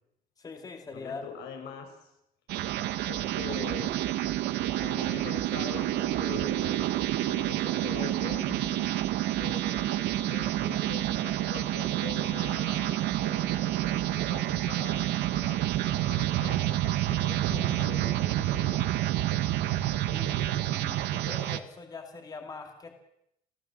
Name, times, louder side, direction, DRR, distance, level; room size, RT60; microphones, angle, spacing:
voice 1, 0.4-1.2 20.1-22.9, left 4 dB, 25° left, 4 dB, 2.6 m, -42 dB
voice 2, 0.9-2.1 3.0-4.0 4.8-9.0 9.4-18.9, left 6 dB, 85° left, 3 dB, 7.0 m, -43 dB
sound 1, 2.5-21.6, right 14 dB, 90° right, 1.3 m, -28 dB
29.0 x 16.0 x 7.6 m, 0.79 s
cardioid pair, 155°, 16 cm